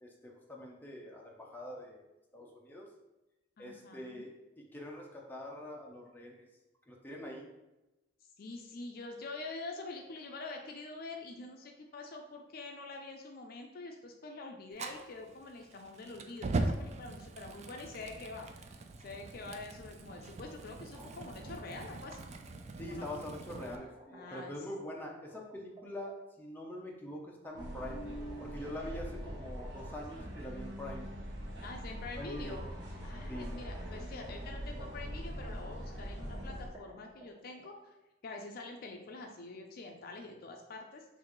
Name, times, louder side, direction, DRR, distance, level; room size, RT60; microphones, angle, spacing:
voice 1, 0.0-2.0 2.3-2.9 3.6-6.5 6.9-7.5 22.8-28.0 28.4-31.1 32.2-32.6 33.3-33.5, left 1 dB, 10° left, -2 dB, 0.7 m, -44 dB
voice 2, 3.6-4.3 8.4-22.2 22.9-23.1 24.1-24.6 31.6-32.6 33.0-37.9 38.2-41.1, left 3 dB, 55° left, 3 dB, 0.4 m, -46 dB
Fire, 14.7-23.7, right 2 dB, 40° right, 0.3 m, -41 dB
sound 1, 20.7-21.8 23.0-25.8 27.4-30.2 30.6-30.7 31.7-31.8 32.2-35.2 36.0-37.7, equal, 20° right, 0.8 m, -55 dB
sound 2, 27.5-36.7, equal, 65° right, 0.9 m, -42 dB
6.0 x 2.6 x 3.0 m, 0.99 s
head